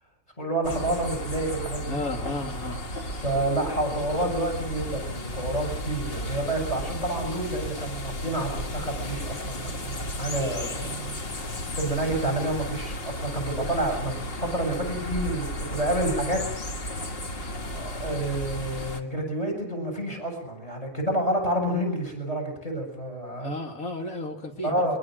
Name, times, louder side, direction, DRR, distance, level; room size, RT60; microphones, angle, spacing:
voice 1, 0.4-2.0 3.2-16.4 17.7-23.5 24.6-24.9, right 1 dB, 25° left, 2 dB, 7.2 m, -29 dB
sound 1, 0.6-19.0, left 1 dB, 45° left, 1.7 m, -34 dB
voice 2, 1.9-2.8 12.1-12.2 23.4-25.0, left 2 dB, 75° left, 3 dB, 3.0 m, -33 dB
22.5 x 22.0 x 6.3 m, 0.71 s
omnidirectional pair, 1.5 m